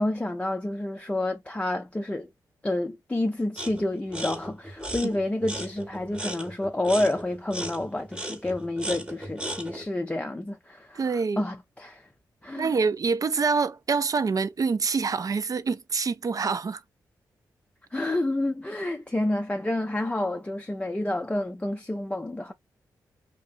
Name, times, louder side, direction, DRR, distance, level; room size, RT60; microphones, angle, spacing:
voice 1, 0.0-2.3 2.6-12.1 12.4-12.7 17.9-22.5, left 1 dB, 15° left, 0.4 m, -29 dB
sound 1, 3.6-3.8 4.1-9.9, right 1 dB, 10° right, 0.9 m, -36 dB
voice 2, 10.9-11.4 12.6-16.8, right 5 dB, 45° right, 0.4 m, -26 dB
2.8 x 2.5 x 2.5 m
supercardioid pair, 45°, 8 cm